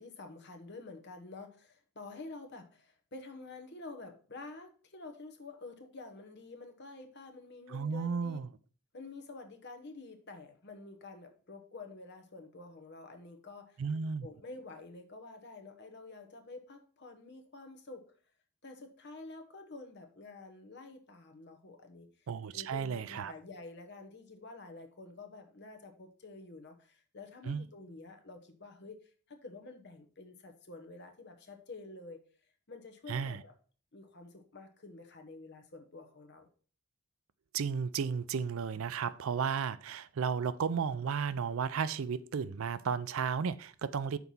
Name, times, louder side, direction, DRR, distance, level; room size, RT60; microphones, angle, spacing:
voice 1, 0.0-8.4 8.9-13.8 14.2-18.0 18.6-22.1 22.5-32.2 32.7-33.5 33.9-36.5 44.1-44.2, left 3 dB, 50° left, 6 dB, 1.1 m, -49 dB
voice 2, 7.7-8.5 13.8-14.3 22.3-23.3 27.4-27.7 33.1-33.4 37.5-44.2, right 6 dB, 70° right, 16 dB, 0.4 m, -34 dB
5.9 x 4.5 x 5.4 m, 0.41 s
head